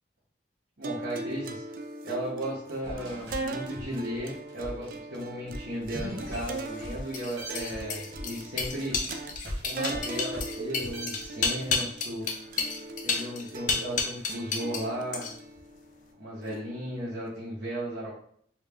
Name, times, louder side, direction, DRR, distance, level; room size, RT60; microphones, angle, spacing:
sound 1, 0.8-17.3, right 2 dB, 50° right, 0.4 m, -40 dB
voice 1, 0.8-1.6 2.0-9.0 9.6-12.2 13.0-15.3 16.2-18.1, right 1 dB, 65° right, -9 dB, 1.3 m, -35 dB
sound 2, 2.8-7.0 7.4-11.7, equal, 90° right, 1.5 m, -40 dB
sound 3, 6.3-14.9 15.1-15.6, left 4 dB, 45° left, 0.5 m, -31 dB
4.4 x 2.3 x 3.5 m, 0.63 s
head